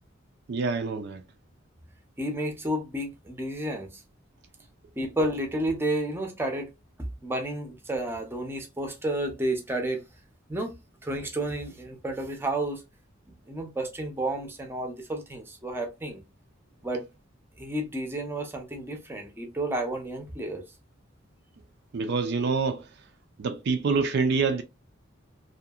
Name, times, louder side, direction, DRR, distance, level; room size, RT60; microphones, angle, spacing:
voice 1, 0.5-1.2 21.9-22.9 23.4-24.6, right 4 dB, 60° right, 0.4 m, -26 dB
voice 2, 2.2-4.0 5.0-6.7 7.2-10.0 10.5-10.7 11.0-12.8 13.3-16.2 16.8-17.0 17.6-20.6, right 1 dB, 10° right, 0.6 m, -31 dB
2.7 x 2.4 x 2.3 m
head